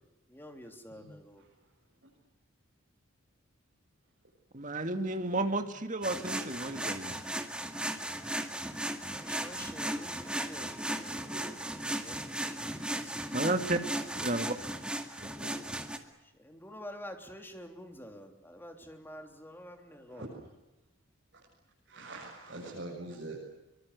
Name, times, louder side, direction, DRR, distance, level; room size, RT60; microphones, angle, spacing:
voice 1, 0.3-1.4 9.0-13.4 16.4-20.3, equal, 10° left, 4 dB, 3.2 m, -48 dB
voice 2, 4.5-7.2 13.3-13.8 14.2-14.6 15.2-15.3, right 2 dB, 40° right, 7 dB, 2.1 m, -32 dB
sound 1, 6.0-16.0, right 1 dB, 5° right, 2.0 m, -36 dB
voice 3, 21.9-23.4, right 2 dB, 55° right, -4 dB, 7.7 m, -43 dB
26.5 x 24.5 x 8.2 m, 1.0 s
head